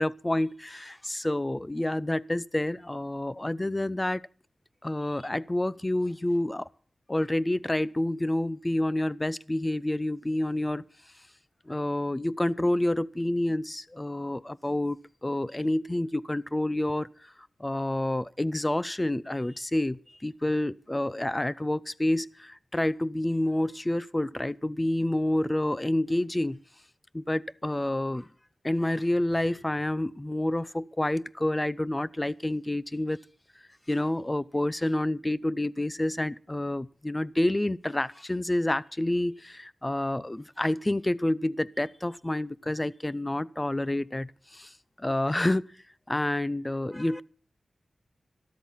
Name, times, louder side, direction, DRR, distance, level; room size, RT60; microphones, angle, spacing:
voice 1, 0.0-4.2 4.8-6.7 7.1-10.8 11.7-15.0 15.2-17.1 17.6-26.6 27.1-28.3 28.6-33.2 33.9-44.7 45.0-45.7 46.1-47.2, left 1 dB, 20° left, 0.6 m, -28 dB
13.0 x 12.5 x 5.7 m
wide cardioid pair, 70°, 0 cm